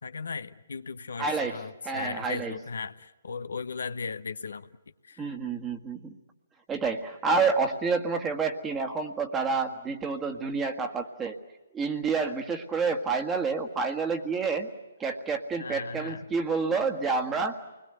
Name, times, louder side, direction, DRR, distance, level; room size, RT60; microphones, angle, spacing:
voice 1, 0.0-4.7 5.0-5.3 15.6-16.3, left 5 dB, 75° left, 12 dB, 1.0 m, -37 dB
voice 2, 1.2-2.6 5.2-6.2 6.7-11.4 11.7-14.7 15.0-17.6, right 4 dB, 15° right, 5 dB, 1.7 m, -29 dB
28.5 x 21.5 x 8.1 m, 1.1 s
hypercardioid pair, 140°, 0 cm